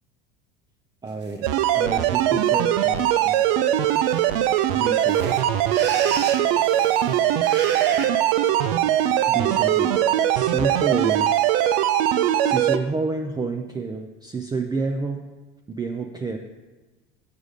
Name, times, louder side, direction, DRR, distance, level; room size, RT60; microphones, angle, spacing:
voice 1, 1.0-1.5 1.7-3.4 4.7-5.3 9.3-9.9 10.3-11.3 12.4-15.2 15.7-16.4, right 4 dB, 15° right, 3 dB, 0.4 m, -29 dB
sound 1, 1.2-1.3 1.8-2.2 2.9-3.2 3.4-3.5 3.7-8.1, right 5 dB, 35° right, 0.8 m, -35 dB
sound 2, 1.4-12.8, right 11 dB, 70° right, 0.5 m, -21 dB
6.7 x 4.8 x 5.1 m, 1.2 s
hypercardioid pair, 90°, 29 cm